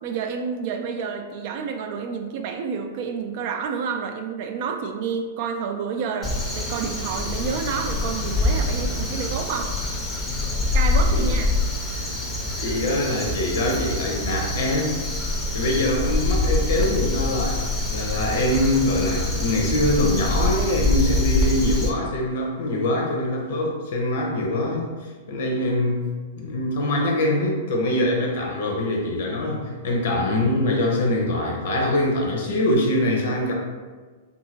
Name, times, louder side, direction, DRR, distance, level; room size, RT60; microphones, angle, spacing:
voice 1, 0.0-9.7 10.7-11.5, right 6 dB, 50° right, 4 dB, 0.3 m, -29 dB
Crow, 6.2-21.9, left 2 dB, 20° left, 0.5 m, -25 dB
voice 2, 12.6-15.0 15.5-26.1 26.4-33.5, left 1 dB, 65° left, 0 dB, 0.7 m, -24 dB
2.7 x 2.6 x 2.8 m, 1.4 s
hypercardioid pair, 105°, 0 cm